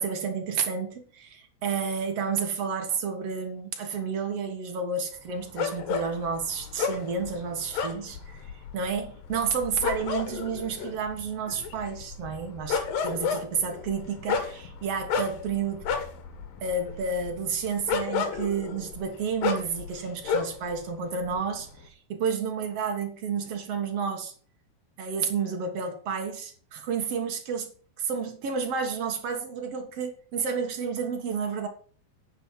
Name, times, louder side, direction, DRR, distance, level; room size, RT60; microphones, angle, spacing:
voice 1, 0.0-15.9 16.6-24.3 25.0-27.7 28.0-31.7, right 5 dB, 50° right, 2.3 m, -31 dB
sound 1, 5.6-20.8 21.0-21.8, left 6 dB, 70° left, 3.0 m, -32 dB
9.9 x 5.6 x 7.5 m
omnidirectional pair, 4.3 m